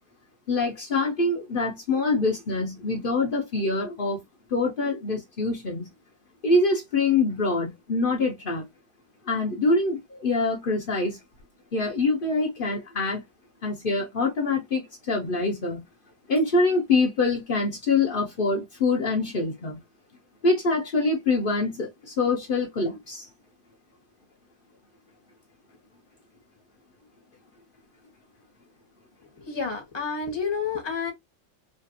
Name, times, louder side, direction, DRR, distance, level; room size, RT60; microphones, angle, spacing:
voice 1, 0.5-4.2 4.5-5.9 6.4-8.6 9.2-11.2 11.7-13.2 13.6-15.8 16.3-19.8 20.4-23.3, left 3 dB, 80° left, 0.4 m, -25 dB
voice 2, 29.2-31.1, left 5 dB, 20° left, 0.7 m, -30 dB
3.3 x 2.5 x 2.6 m
omnidirectional pair, 2.1 m